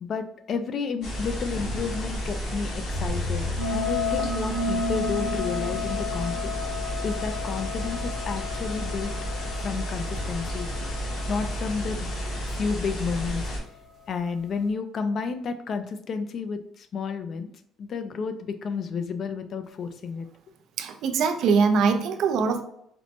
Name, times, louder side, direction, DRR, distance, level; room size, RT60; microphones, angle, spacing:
voice 1, 0.0-6.3 7.0-9.1 9.6-10.7 11.3-12.1 12.6-13.4 14.1-17.5 17.8-20.3, left 5 dB, 45° left, 9 dB, 0.3 m, -31 dB
sound 1, 1.0-13.6, equal, 60° left, 1.0 m, -31 dB
sound 2, 3.6-12.9, left 3 dB, 40° right, 0.8 m, -33 dB
voice 2, 20.8-22.6, right 5 dB, 65° right, 7 dB, 0.4 m, -22 dB
4.3 x 2.1 x 2.7 m, 0.71 s
cardioid pair, 140°, 0 cm